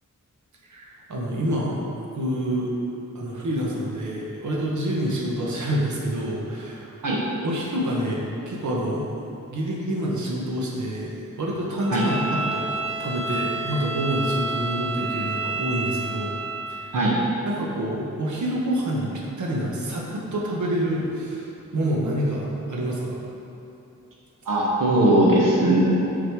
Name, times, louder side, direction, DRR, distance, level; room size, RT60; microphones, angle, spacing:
voice 1, 0.6-1.8 2.1-2.7 3.1-7.0 7.4-9.1 9.5-12.7 13.0-16.4 16.7-17.0 17.4-19.1 19.4-23.2, right 1 dB, 65° right, -3 dB, 1.2 m, -27 dB
Bowed string instrument, 11.8-16.7, right 3 dB, 15° right, 1.4 m, -29 dB
voice 2, 24.5-25.8, right 1 dB, 90° right, -4 dB, 1.1 m, -19 dB
8.1 x 4.0 x 4.7 m, 2.9 s
wide cardioid pair, 125°, 32 cm